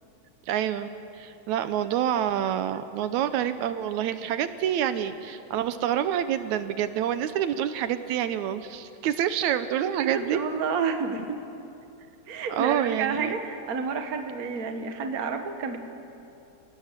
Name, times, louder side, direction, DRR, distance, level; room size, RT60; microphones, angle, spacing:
voice 1, 0.5-0.9 1.2-10.4 12.5-13.4, right 10 dB, 80° right, 11 dB, 2.1 m, -27 dB
voice 2, 10.0-11.4 12.3-15.8, right 5 dB, 40° right, 6 dB, 1.5 m, -30 dB
29.5 x 18.5 x 7.5 m, 2.8 s
omnidirectional pair, 3.4 m